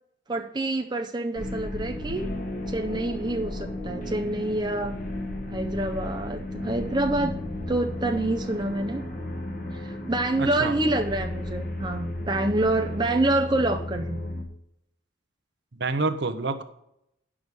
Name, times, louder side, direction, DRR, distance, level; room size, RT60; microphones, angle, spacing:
voice 1, 0.3-2.3 2.7-5.0 5.5-7.3 7.7-9.0 9.7-14.2, right 2 dB, 20° right, 4 dB, 0.5 m, -27 dB
sound 1, 1.4-14.4, left 1 dB, 45° left, 1.2 m, -34 dB
voice 2, 10.4-10.8 15.7-16.6, right 3 dB, 60° right, 10 dB, 0.8 m, -28 dB
9.9 x 6.3 x 5.3 m, 0.78 s
head